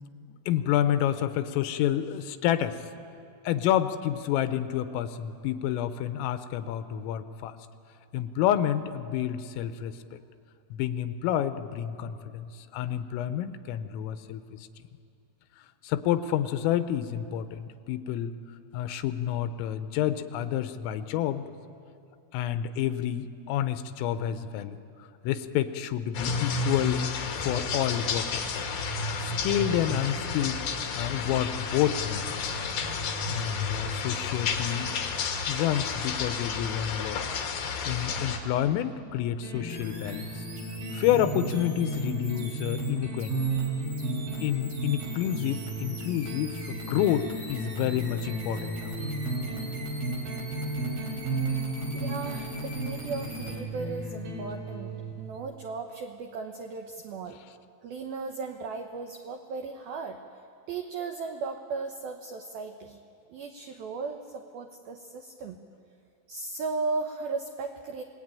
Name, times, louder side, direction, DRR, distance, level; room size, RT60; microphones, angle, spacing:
voice 1, 0.5-2.8 3.5-7.6 8.1-10.2 10.7-14.6 15.8-18.3 18.7-21.4 22.3-24.8 25.2-27.1 27.4-28.6 29.2-30.6 31.0-32.5 33.2-35.0 35.5-37.4 37.9-40.4 40.9-43.5 44.4-49.0, left 11 dB, 90° left, 10 dB, 3.6 m, -29 dB
sound 1, 26.1-38.4, left 5 dB, 55° left, 3.1 m, -31 dB
sound 2, 39.4-55.4, right 2 dB, 45° right, 6.0 m, -34 dB
sound 3, 39.7-53.6, right 2 dB, 25° right, 2.9 m, -45 dB
voice 2, 51.7-57.4 57.8-60.2 60.7-63.0 63.3-65.6 66.3-68.0, right 4 dB, 85° right, 4 dB, 2.1 m, -36 dB
28.5 x 19.5 x 9.0 m, 2.6 s
omnidirectional pair, 5.9 m